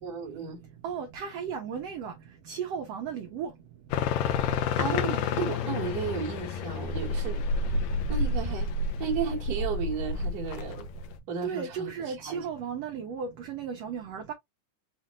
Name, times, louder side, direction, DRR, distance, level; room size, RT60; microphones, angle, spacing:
voice 1, 0.0-0.6 4.5-7.7 8.1-8.7 9.0-10.8 11.3-12.5, right 6 dB, 40° right, 1.6 m, -34 dB
voice 2, 0.8-2.1 2.5-3.5 11.4-14.3, right 7 dB, 70° right, 1.6 m, -35 dB
sound 1, 3.9-11.2, left 4 dB, 75° left, 1.7 m, -29 dB
5.8 x 2.5 x 3.0 m
omnidirectional pair, 3.6 m